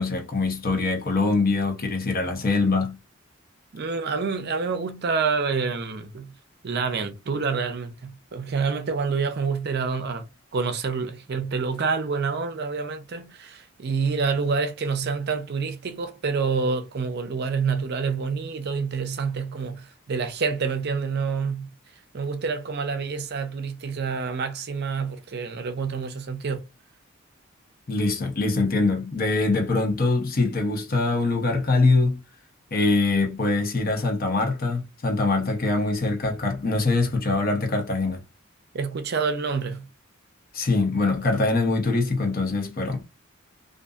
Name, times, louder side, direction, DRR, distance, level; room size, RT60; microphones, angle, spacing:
voice 1, 0.0-3.0 27.9-32.2 32.7-38.2 40.5-43.1, left 3 dB, 45° left, 0.9 m, -23 dB
voice 2, 3.7-6.3 6.6-10.3 10.5-21.7 22.1-26.6 38.7-39.9, right 5 dB, 50° right, 0.5 m, -27 dB
2.6 x 2.5 x 2.3 m
head